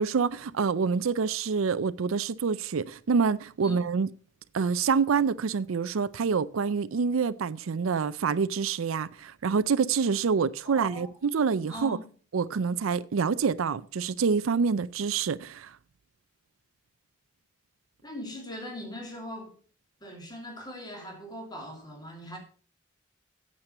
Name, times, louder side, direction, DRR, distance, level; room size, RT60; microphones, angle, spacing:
voice 1, 0.0-4.1 4.5-12.0 12.3-15.7, right 5 dB, 85° right, 0.5 m, -27 dB
voice 2, 10.6-12.1 18.0-19.5 20.0-22.4, equal, 20° left, 2.8 m, -41 dB
8.8 x 7.6 x 6.6 m
head